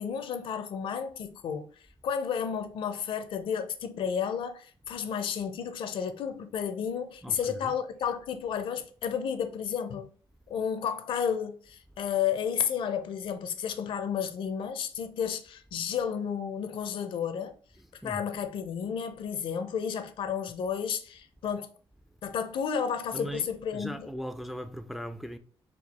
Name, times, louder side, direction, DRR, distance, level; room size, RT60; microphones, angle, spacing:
voice 1, 0.0-1.7 2.0-10.1 10.5-17.6 18.0-21.7 22.2-24.1, left 7 dB, 70° left, 0.5 m, -32 dB
voice 2, 7.2-7.7 17.8-18.2 23.1-25.4, equal, ahead, 0.3 m, -39 dB
4.5 x 2.4 x 4.1 m
cardioid pair, 120°, 9 cm